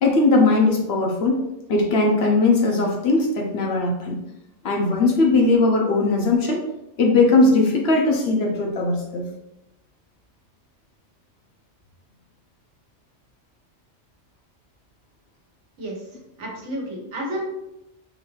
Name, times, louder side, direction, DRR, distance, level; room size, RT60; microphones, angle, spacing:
voice 1, 0.0-1.4 1.7-4.2 4.6-6.6 7.0-9.3, left 3 dB, 60° left, 0 dB, 0.9 m, -19 dB
voice 2, 16.4-17.5, equal, 75° right, -2 dB, 1.3 m, -30 dB
3.9 x 2.6 x 3.0 m, 0.89 s
omnidirectional pair, 1.2 m